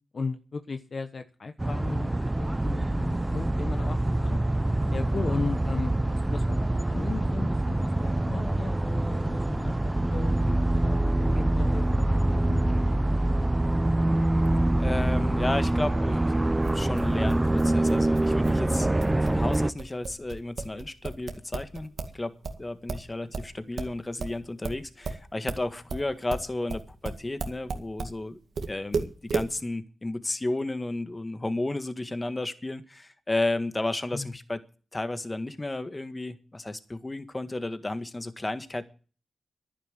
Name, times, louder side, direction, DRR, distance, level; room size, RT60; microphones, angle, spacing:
voice 1, 0.1-2.1 2.4-4.4 4.9-12.9 34.1-34.3, left 4 dB, 55° left, 1.1 m, -36 dB
sound 1, 1.6-19.7, right 1 dB, 20° right, 0.8 m, -25 dB
voice 2, 14.8-18.9 19.2-28.4 28.7-34.6 34.9-38.8, left 2 dB, 25° left, 1.7 m, -33 dB
sound 2, 16.6-22.2 22.4-28.2 28.6-29.5, right 4 dB, 75° right, 2.0 m, -34 dB
11.0 x 10.0 x 8.2 m
cardioid pair, 50°, 0 cm